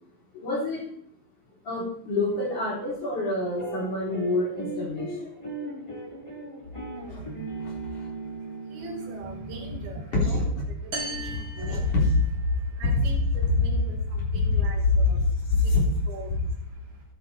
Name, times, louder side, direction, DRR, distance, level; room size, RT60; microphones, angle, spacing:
voice 1, 0.3-0.8 1.6-5.2 7.1-7.3 7.6-8.1 10.1-10.6 11.6-12.5 12.9-13.0 14.4-14.6 15.1-15.2 15.5-15.8, left 3 dB, 50° left, -3 dB, 4.9 m, -26 dB
sound 1, 3.6-10.1, right 2 dB, 10° left, 3.3 m, -37 dB
voice 2, 7.0-10.4 10.8-11.9 12.5-17.0, right 2 dB, 75° right, 0 dB, 4.5 m, -42 dB
sound 2, 10.9-12.7, right 2 dB, 35° right, 4.3 m, -37 dB
16.0 x 11.5 x 4.4 m, 0.66 s
omnidirectional pair, 4.5 m